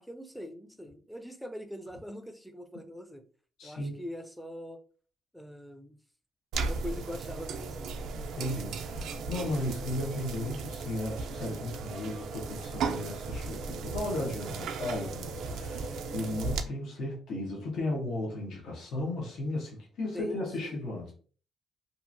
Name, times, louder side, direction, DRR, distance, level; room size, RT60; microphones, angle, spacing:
voice 1, 0.0-3.2 3.6-4.8 5.3-6.0 6.6-7.9 20.1-20.8, left 1 dB, ahead, 7 dB, 0.5 m, -42 dB
voice 2, 3.6-3.9 8.3-21.1, left 1 dB, 70° left, -2 dB, 0.9 m, -35 dB
sound 1, 6.5-16.6, right 4 dB, 80° right, 0.4 m, -36 dB
2.7 x 2.5 x 2.5 m, 0.41 s
cardioid pair, 90°, 0 cm